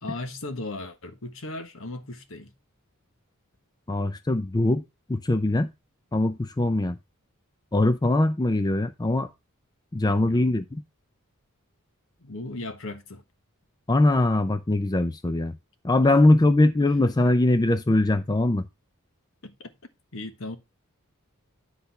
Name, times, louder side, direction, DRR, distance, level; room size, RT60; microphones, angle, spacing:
voice 1, 0.0-2.5 10.2-10.5 12.2-13.2 19.4-19.7 20.1-20.6, left 2 dB, 65° left, 1.3 m, -37 dB
voice 2, 3.9-4.8 5.1-5.7 6.1-7.0 7.7-9.3 9.9-10.8 13.9-15.5 15.8-18.6, left 2 dB, 20° left, 0.5 m, -22 dB
10.5 x 4.0 x 5.8 m
head